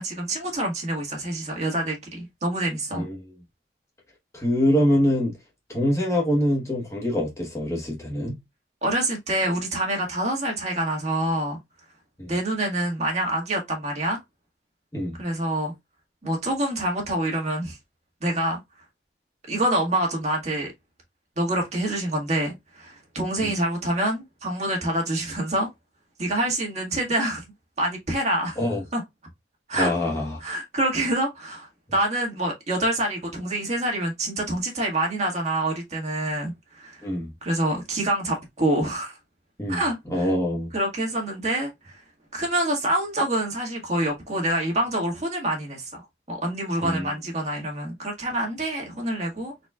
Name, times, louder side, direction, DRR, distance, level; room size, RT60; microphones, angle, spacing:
voice 1, 0.0-3.1 8.8-11.6 12.3-14.2 15.2-15.7 16.2-17.8 18.2-18.6 19.5-20.7 21.4-25.7 26.2-27.4 27.8-28.6 28.9-29.0 29.7-29.9 30.4-37.0 37.4-39.2 39.7-40.3 40.7-42.0 42.3-49.5, right 1 dB, 40° right, 1.8 m, -26 dB
voice 2, 4.3-5.3 5.7-8.3 12.2-12.3 14.9-15.2 23.4-23.5 28.6-28.8 29.8-30.4 37.0-37.3 39.6-39.8 40.1-40.7 46.8-47.0, left 1 dB, 15° left, 1.2 m, -24 dB
4.3 x 4.2 x 2.3 m
head